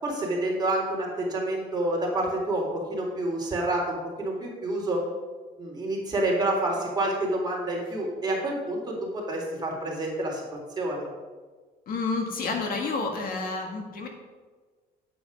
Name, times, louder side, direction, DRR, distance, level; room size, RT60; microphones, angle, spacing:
voice 1, 0.0-5.0 5.6-11.1, right 1 dB, 25° right, -3 dB, 3.7 m, -28 dB
voice 2, 11.9-14.1, left 3 dB, 55° left, 2 dB, 2.0 m, -29 dB
8.7 x 8.4 x 5.2 m, 1.4 s
cardioid pair, 110°, 17 cm